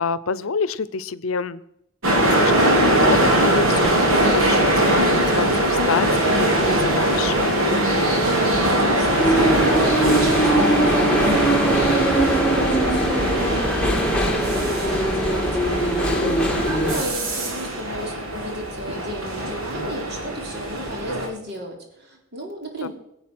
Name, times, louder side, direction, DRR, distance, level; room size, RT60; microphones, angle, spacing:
voice 1, 0.0-1.6 2.4-7.5 16.2-16.7 22.8-22.9, left 5 dB, 85° left, 18 dB, 0.7 m, -27 dB
sound 1, 2.0-21.3, right 1 dB, 85° right, 3.0 m, -21 dB
voice 2, 8.5-22.9, equal, 55° right, 1 dB, 3.6 m, -34 dB
sound 2, 9.2-17.0, right 1 dB, 5° left, 1.9 m, -21 dB
21.5 x 8.2 x 6.1 m, 0.82 s
head